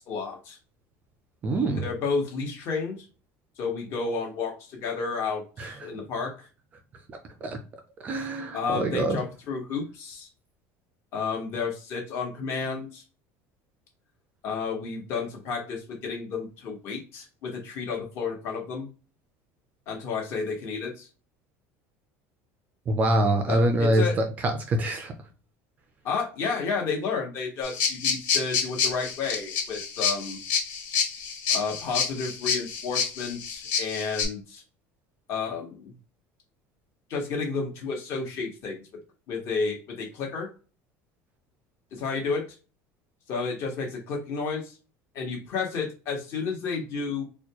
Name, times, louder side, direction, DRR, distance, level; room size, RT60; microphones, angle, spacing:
voice 1, 0.1-0.6 1.8-3.0 3.6-6.5 8.5-10.3 11.1-13.0 14.4-18.9 19.9-21.1 23.5-24.1 26.0-30.4 31.5-34.6 35.3-35.9 37.1-38.8 39.3-40.5 41.9-42.5 43.3-44.7 45.1-47.2, left 5 dB, 40° left, 1 dB, 1.3 m, -31 dB
voice 2, 1.4-1.8 5.6-5.9 7.4-7.6 8.0-9.2 22.9-25.1, right 1 dB, 25° right, 6 dB, 0.4 m, -25 dB
sound 1, 27.6-34.2, left 6 dB, 70° left, 1.7 m, -28 dB
4.3 x 2.3 x 2.9 m, 0.34 s
cardioid pair, 180°, 7 cm